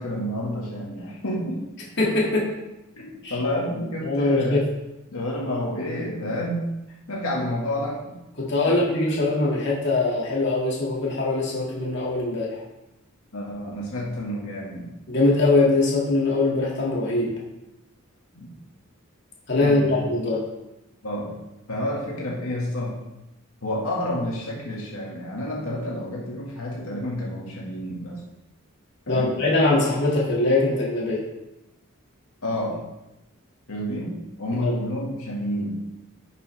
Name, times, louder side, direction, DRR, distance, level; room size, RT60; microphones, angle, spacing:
voice 1, 0.0-1.6 3.0-4.7 5.1-6.7 7.1-8.2 8.6-9.2 13.3-14.9 18.3-18.5 19.6-20.1 21.0-21.3 21.7-23.0 23.6-28.2 29.1-29.3 32.4-32.8 33.7-35.7, left 1 dB, 85° left, -3 dB, 1.9 m, -29 dB
voice 2, 2.0-2.5 3.2-3.4 4.0-4.6 8.4-12.6 15.1-17.3 19.5-20.4 29.1-31.2 34.5-34.8, left 2 dB, 55° left, -3 dB, 2.3 m, -22 dB
10.5 x 6.7 x 3.4 m, 0.95 s
head